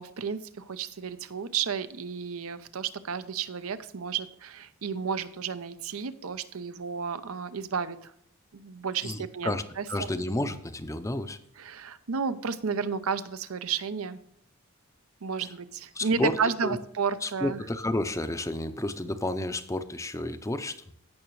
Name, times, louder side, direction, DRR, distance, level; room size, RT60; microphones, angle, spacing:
voice 1, 0.0-8.1 8.5-10.1 11.6-14.2 15.2-17.6, right 6 dB, 75° right, 12 dB, 0.7 m, -32 dB
voice 2, 9.0-9.6 9.9-11.4 15.4-15.5 15.9-16.8 17.2-20.8, left 1 dB, 15° left, 10 dB, 0.6 m, -31 dB
16.0 x 6.0 x 3.1 m, 0.71 s
head